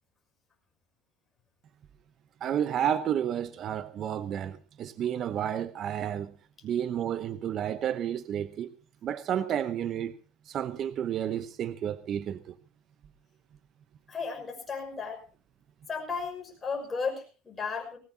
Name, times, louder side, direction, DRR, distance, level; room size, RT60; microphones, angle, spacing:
voice 1, 2.4-6.3 6.6-8.7 9.0-10.2 10.4-12.6, right 9 dB, 40° right, 0.9 m, -31 dB
voice 2, 14.1-15.2 15.9-18.0, left 5 dB, 20° left, 6.2 m, -34 dB
20.0 x 19.0 x 2.9 m
cardioid pair, 140°, 0 cm